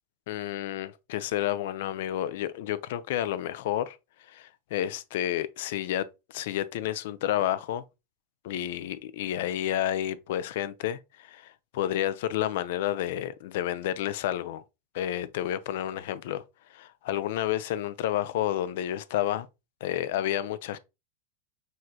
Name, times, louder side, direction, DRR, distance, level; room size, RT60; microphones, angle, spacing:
voice 1, 0.3-4.0 4.3-6.1 6.3-7.8 8.4-14.6 14.9-16.4 16.7-19.5 19.8-20.8, left 12 dB, 55° left, 0.4 m, -30 dB
6.4 x 3.2 x 2.4 m
figure-of-eight pair, 90°, 0 cm